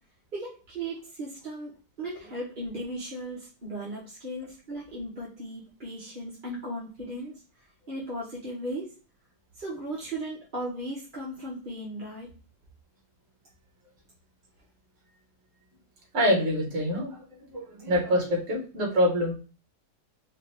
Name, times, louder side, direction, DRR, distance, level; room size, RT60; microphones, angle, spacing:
voice 1, 0.3-1.7 2.0-7.3 7.9-8.9 9.6-12.3, right 1 dB, 35° right, -6 dB, 1.3 m, -36 dB
voice 2, 16.1-19.3, equal, 50° right, -2 dB, 2.1 m, -26 dB
5.2 x 2.6 x 3.5 m, 0.36 s
omnidirectional pair, 1.7 m